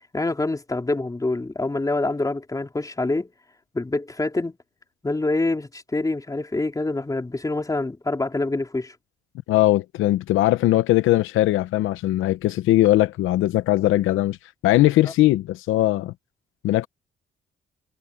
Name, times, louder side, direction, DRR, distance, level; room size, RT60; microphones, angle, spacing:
voice 1, 0.1-3.3 3.7-4.6 5.0-8.9, left 2 dB, 15° left, 3.6 m, -26 dB
voice 2, 9.5-14.4 14.6-16.1 16.6-16.9, left 15 dB, 85° left, 0.7 m, -20 dB
cardioid pair, 90°, 20 cm